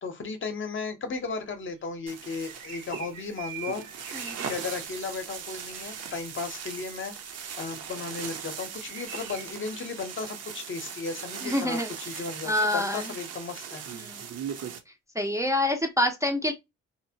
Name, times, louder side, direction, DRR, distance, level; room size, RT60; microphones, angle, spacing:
voice 1, 0.0-3.8 4.5-7.1 7.6-13.8, left 4 dB, 40° left, 0.7 m, -35 dB
sound 1, 2.1-14.8, right 7 dB, 55° right, 0.6 m, -39 dB
sound 2, 2.4-5.6 8.6-9.5, right 7 dB, 90° right, 1.1 m, -43 dB
voice 2, 4.1-4.5 11.4-11.9 12.5-13.0 14.0-14.2 15.2-16.5, left 1 dB, 10° right, 0.5 m, -26 dB
2.8 x 2.0 x 2.7 m
cardioid pair, 90°, 30 cm